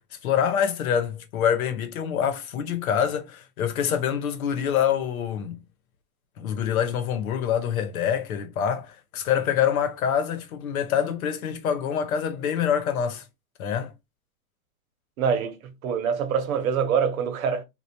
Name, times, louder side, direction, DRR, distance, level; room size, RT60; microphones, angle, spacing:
voice 1, 0.2-5.6 6.4-13.2 13.6-13.9, left 8 dB, 80° left, 0.9 m, -25 dB
voice 2, 15.2-15.6 15.8-17.6, right 7 dB, 75° right, 1.0 m, -24 dB
3.3 x 2.4 x 2.7 m
supercardioid pair, 145°, 42 cm